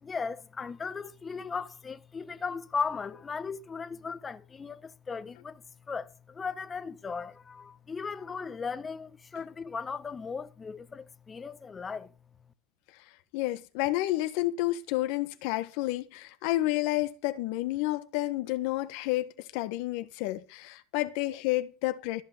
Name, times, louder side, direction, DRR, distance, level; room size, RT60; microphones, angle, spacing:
voice 1, 0.0-12.1, left 5 dB, 25° left, 1.2 m, -37 dB
voice 2, 13.3-22.2, left 17 dB, 75° left, 1.3 m, -30 dB
14.5 x 5.8 x 8.1 m
supercardioid pair, 100°, 0 cm